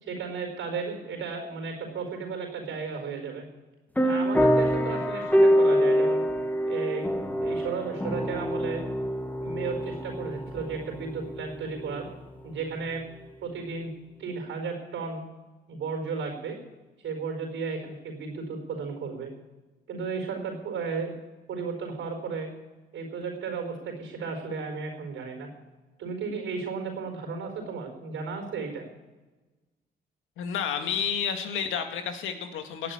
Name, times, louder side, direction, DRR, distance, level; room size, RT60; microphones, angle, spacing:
voice 1, 0.0-3.5 4.0-6.2 6.7-8.8 9.4-12.1 12.4-13.0 13.4-13.9 14.2-15.2 15.7-16.6 17.0-19.3 19.9-21.1 21.5-22.5 22.9-25.5 26.0-28.9, right 5 dB, 80° right, 4 dB, 4.8 m, -34 dB
sound 1, 4.0-12.1, equal, 10° left, 1.7 m, -25 dB
voice 2, 30.4-32.9, left 7 dB, 85° left, 6 dB, 1.8 m, -30 dB
16.0 x 6.8 x 9.7 m, 1.2 s
cardioid pair, 90°, 20 cm